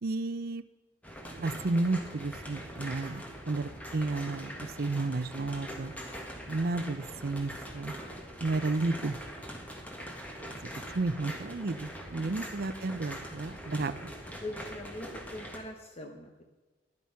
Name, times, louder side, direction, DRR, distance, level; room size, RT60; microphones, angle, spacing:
voice 1, 0.0-0.6 1.4-5.9 6.5-7.9 8.4-9.2 10.6-10.7 10.9-14.1, right 3 dB, 55° right, 11 dB, 0.6 m, -32 dB
sound 1, 1.0-15.6, equal, 10° left, 1.7 m, -43 dB
voice 2, 6.1-6.5 12.1-12.4 14.2-16.4, left 1 dB, 35° left, 4 dB, 0.9 m, -44 dB
12.0 x 11.0 x 5.7 m, 1.2 s
head